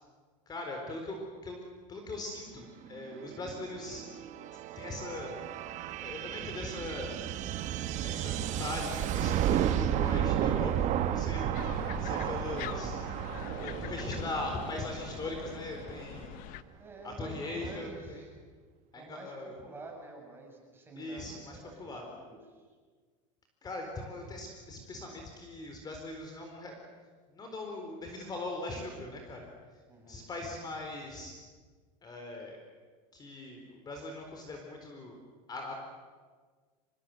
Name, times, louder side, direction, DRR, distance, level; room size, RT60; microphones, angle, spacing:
voice 1, 0.5-1.6 1.9-4.0 4.7-5.4 6.0-7.2 8.0-13.0 13.5-16.3 17.0-18.2 18.9-19.6 21.0-22.0 23.6-26.7 27.3-29.5 30.1-31.3 32.0-32.6 33.1-35.2 35.5-35.7, left 2 dB, 25° left, 2 dB, 4.3 m, -40 dB
sound 1, 3.0-16.4, right 11 dB, 45° right, 1.6 m, -33 dB
sound 2, 11.5-16.6, left 14 dB, 55° left, 1.0 m, -44 dB
voice 2, 16.8-18.3 18.9-19.3 19.6-22.6 29.9-30.3, right 3 dB, 15° right, 0 dB, 7.4 m, -49 dB
25.0 x 21.5 x 8.0 m, 1.5 s
supercardioid pair, 125°, 17 cm